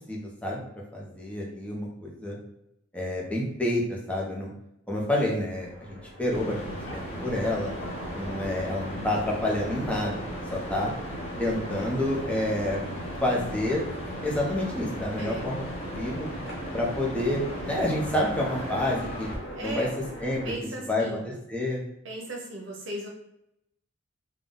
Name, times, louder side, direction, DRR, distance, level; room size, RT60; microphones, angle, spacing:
voice 1, 0.1-0.6 0.9-2.4 2.9-4.5 4.9-6.6 6.9-7.8 8.1-10.9 11.4-12.8 13.2-13.8 14.2-15.6 15.9-16.3 16.7-19.3 19.6-19.9 20.2-20.5 20.9-21.8, left 1 dB, 5° left, -3 dB, 0.9 m, -28 dB
Train, 5.2-20.5, equal, 75° left, 1.1 m, -41 dB
sound 1, 6.3-19.4, equal, 30° left, 1.0 m, -37 dB
voice 2, 15.2-15.5 19.5-19.9 20.4-21.2 22.0-23.1, right 1 dB, 65° right, -1 dB, 0.9 m, -36 dB
3.9 x 2.4 x 3.8 m, 0.81 s
head